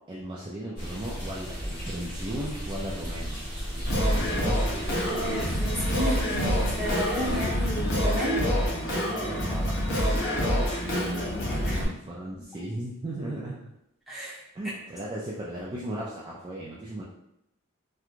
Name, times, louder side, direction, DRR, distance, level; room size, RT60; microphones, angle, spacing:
voice 1, 0.1-3.4 3.7-5.1 9.4-9.8 10.1-11.4 11.8-13.7 14.5-17.0, right 1 dB, 25° right, -5 dB, 0.3 m, -37 dB
sound 1, 0.8-7.5, equal, 25° left, 1.4 m, -35 dB
Singing, 3.9-11.8, equal, 65° left, 0.7 m, -27 dB
voice 2, 5.0-8.4 11.7-11.8 14.1-14.4, equal, ahead, -10 dB, 1.0 m, -32 dB
3.0 x 2.2 x 2.4 m, 0.82 s
head